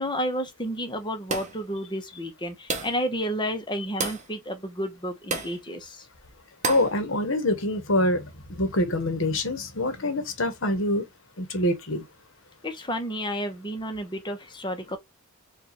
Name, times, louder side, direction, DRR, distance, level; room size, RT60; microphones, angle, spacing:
voice 1, 0.0-6.1 12.6-15.0, equal, 20° left, 1.0 m, -31 dB
sound 1, 1.3-1.7 2.7-3.1 4.0-4.3 5.3-5.6 6.6-7.0, right 3 dB, 35° right, 1.0 m, -30 dB
voice 2, 6.7-8.2 8.6-11.0 11.4-12.0, left 1 dB, 60° left, 1.2 m, -25 dB
4.8 x 2.6 x 3.1 m
head